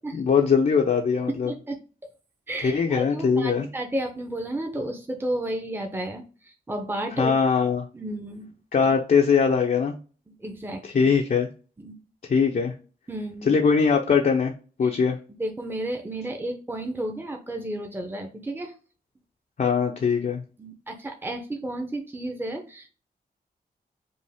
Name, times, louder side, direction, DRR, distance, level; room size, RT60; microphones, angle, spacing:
voice 1, 0.1-1.5 2.6-3.7 7.2-7.8 8.7-9.9 10.8-11.5 12.3-12.7 13.5-14.5 14.8-15.2 19.6-20.4, left 6 dB, 55° left, 1 dB, 0.6 m, -21 dB
voice 2, 1.3-1.8 2.5-7.3 7.9-8.5 10.4-11.1 11.8-12.0 13.1-13.6 14.8-14.9 15.4-18.7 20.6-22.9, right 1 dB, 15° right, 3 dB, 0.8 m, -32 dB
5.4 x 2.6 x 3.5 m, 0.36 s
wide cardioid pair, 105°, 16 cm